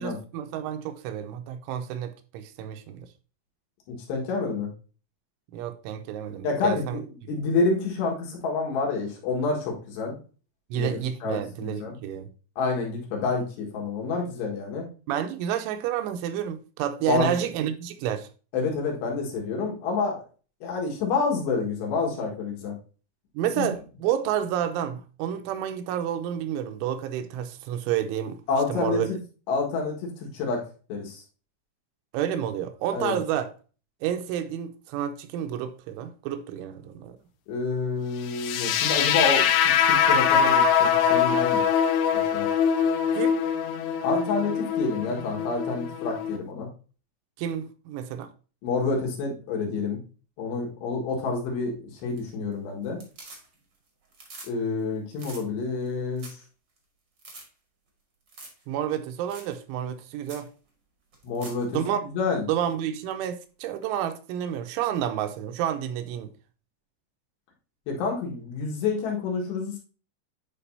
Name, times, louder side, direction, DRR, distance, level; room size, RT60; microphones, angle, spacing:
voice 1, 0.0-3.1 5.5-7.0 10.7-12.3 15.1-18.3 23.3-28.4 28.7-29.1 32.1-33.5 34.0-37.2 43.1-43.4 47.4-48.3 58.7-60.5 61.7-62.0 62.5-66.3, right 10 dB, 85° right, 3.0 m, -30 dB
voice 2, 3.9-4.7 6.4-7.0 7.3-10.2 10.7-12.0 12.6-14.9 17.1-17.3 18.5-20.2 20.6-22.8 23.6-23.7 28.5-29.0 29.5-30.6 30.9-31.2 32.9-33.2 37.5-41.6 42.3-42.5 44.0-46.7 48.6-50.0 50.4-53.0 54.5-56.4 61.2-61.8 62.1-62.4 67.9-69.8, left 4 dB, 70° left, 3.5 m, -28 dB
sound 1, 38.3-46.4, left 7 dB, 90° left, 2.4 m, -23 dB
sound 2, 52.0-52.5 52.8-53.8 54.0-54.5 54.8-54.9 55.1-55.4 55.9-56.0 56.2-56.4 56.8-56.9 57.2-57.4 58.3-58.6 58.9-59.0 59.3-59.5 59.9-60.0 60.2-60.5 61.1-61.6 63.8-63.9, right 3 dB, 55° right, 1.2 m, -45 dB
9.9 x 5.2 x 2.7 m
omnidirectional pair, 5.6 m